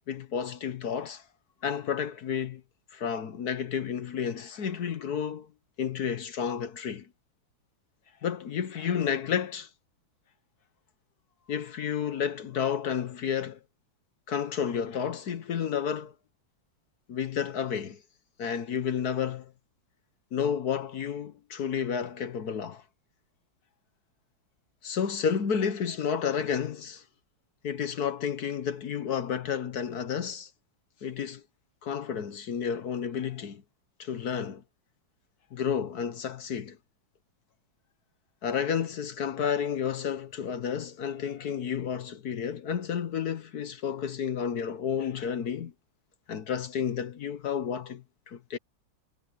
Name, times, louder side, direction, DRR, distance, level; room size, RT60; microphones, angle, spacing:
voice 1, 0.1-1.2 1.6-2.6 2.9-5.5 5.8-7.1 8.2-9.7 11.5-13.6 14.3-16.1 17.1-18.0 18.4-19.5 20.3-22.8 24.8-27.0 27.6-30.5 31.0-31.4 31.8-33.6 34.0-34.6 35.5-36.8 38.4-45.7 46.3-48.6, left 7 dB, 55° left, 1.3 m, -31 dB
omnidirectional pair, 2.2 m